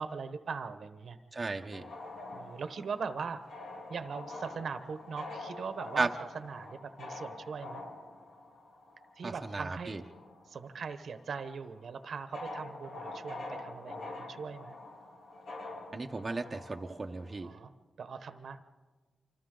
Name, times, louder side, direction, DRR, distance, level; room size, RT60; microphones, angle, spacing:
voice 1, 0.0-1.2 2.3-3.4 3.9-7.8 9.2-10.0 10.5-14.8 17.4-18.6, right 5 dB, 60° right, 10 dB, 1.1 m, -40 dB
voice 2, 1.3-1.9 6.0-6.1 9.2-10.0 15.9-17.5, right 3 dB, 25° right, 3 dB, 0.9 m, -35 dB
sound 1, 1.7-10.7 10.9-17.5, left 2 dB, 80° left, 3.4 m, -46 dB
29.0 x 25.5 x 3.9 m, 1.3 s
wide cardioid pair, 120°, 0 cm